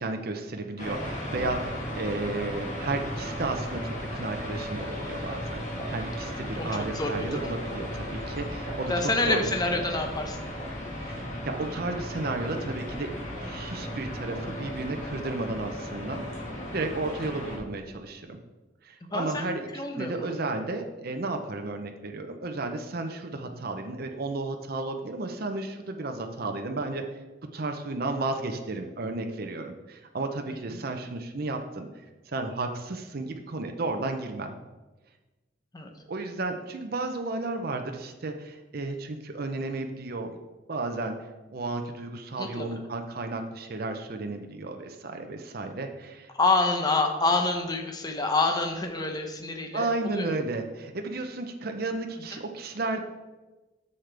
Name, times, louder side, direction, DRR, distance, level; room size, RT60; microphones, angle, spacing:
voice 1, 0.0-5.6 5.9-8.9 9.3-9.4 11.0-13.1 13.4-16.2 16.7-18.4 18.8-19.6 20.0-27.0 27.5-31.9 32.3-34.6 36.1-40.4 40.7-41.1 41.5-46.3 49.7-53.0, right 2 dB, 55° right, 5 dB, 0.7 m, -33 dB
sound 1, 0.8-17.6, equal, 40° left, 1.9 m, -35 dB
voice 2, 6.6-7.5 8.9-10.4 19.1-20.3 23.5-23.6 30.5-30.8 35.7-35.9 42.4-42.7 46.3-50.3 52.3-52.4, left 3 dB, 20° left, 4 dB, 0.8 m, -28 dB
9.6 x 6.6 x 3.4 m, 1.2 s
head